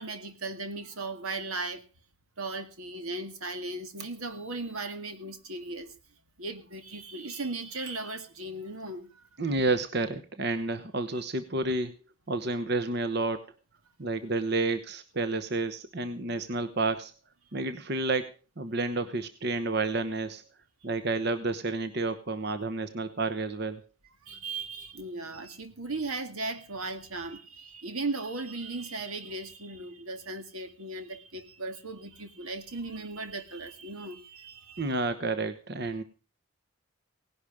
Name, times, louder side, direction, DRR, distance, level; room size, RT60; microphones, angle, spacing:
voice 1, 0.0-1.8 2.4-6.0 6.4-9.2 24.2-34.9, right 3 dB, 85° right, 9 dB, 2.0 m, -37 dB
voice 2, 9.4-11.9 12.3-13.4 14.0-17.1 17.5-20.4 20.8-23.8 34.8-36.0, right 2 dB, 50° right, 10 dB, 1.0 m, -30 dB
18.0 x 11.5 x 4.9 m, 0.35 s
head